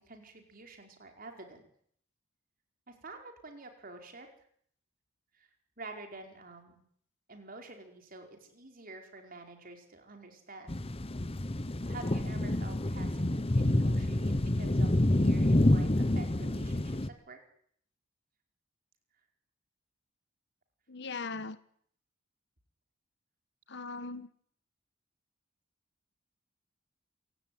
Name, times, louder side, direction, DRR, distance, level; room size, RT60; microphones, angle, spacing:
voice 1, 0.0-1.6 2.9-4.3 5.3-5.5 5.8-6.8 7.3-10.8 11.9-17.0 17.3-17.4, right 2 dB, 45° right, 4 dB, 5.1 m, -48 dB
sound 1, 10.7-17.1, left 1 dB, 30° left, 0.9 m, -28 dB
voice 2, 20.9-21.6 23.7-24.3, left 4 dB, 60° left, 14 dB, 1.3 m, -39 dB
27.0 x 17.0 x 9.5 m, 0.65 s
head